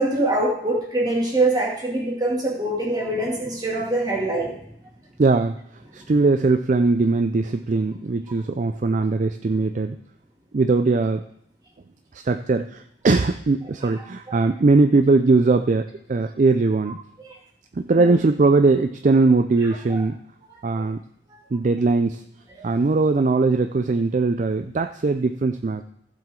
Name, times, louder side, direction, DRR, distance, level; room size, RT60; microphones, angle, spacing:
voice 1, 0.0-4.5 14.3-14.4 17.2-17.3 18.0-18.2 19.9-20.0 22.6-22.7, right 2 dB, 20° right, -3 dB, 2.5 m, -24 dB
voice 2, 5.2-5.6 5.9-10.0 10.5-11.2 12.1-17.0 17.7-20.2 20.6-21.0 21.5-22.2 22.6-25.8, right 3 dB, 45° right, 8 dB, 0.4 m, -20 dB
15.0 x 7.6 x 3.8 m, 0.73 s
head